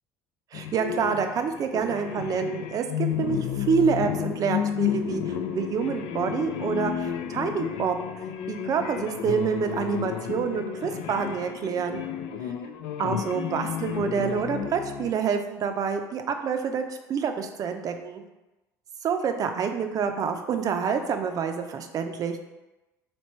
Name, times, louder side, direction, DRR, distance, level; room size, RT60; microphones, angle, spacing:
sound 1, 0.5-15.1, left 9 dB, 70° left, 0.3 m, -32 dB
voice 1, 0.5-8.0 8.5-12.0 13.0-18.2 19.0-22.4, right 6 dB, 45° right, 6 dB, 0.5 m, -27 dB
3.1 x 2.8 x 4.2 m, 1.0 s
supercardioid pair, 80°, 8 cm